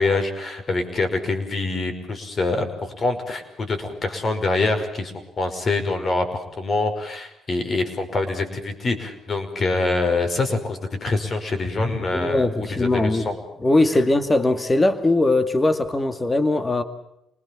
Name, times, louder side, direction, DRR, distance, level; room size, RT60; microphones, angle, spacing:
voice 1, 0.0-13.4, left 3 dB, 40° left, 5.4 m, -25 dB
voice 2, 12.1-13.2 13.6-16.8, left 2 dB, 20° left, 2.1 m, -20 dB
28.0 x 20.5 x 7.3 m
cardioid pair, 90°, 0 cm